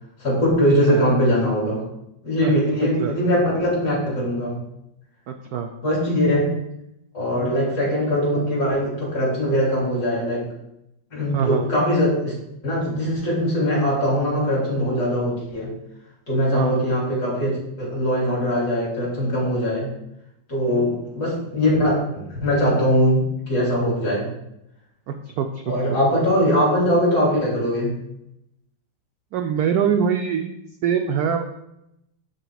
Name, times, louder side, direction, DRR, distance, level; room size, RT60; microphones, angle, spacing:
voice 1, 0.2-1.8 2.2-4.6 5.8-6.5 7.1-10.5 11.1-12.3 12.6-15.7 16.3-19.9 20.5-24.3 25.7-27.9, equal, 55° left, -5 dB, 3.4 m, -21 dB
voice 2, 5.3-5.7 7.3-7.5 11.3-11.6 16.5-16.7 20.7-20.9 25.4-25.5 29.3-31.4, right 7 dB, 75° right, 5 dB, 0.8 m, -23 dB
11.5 x 4.4 x 2.3 m, 0.82 s
omnidirectional pair, 2.1 m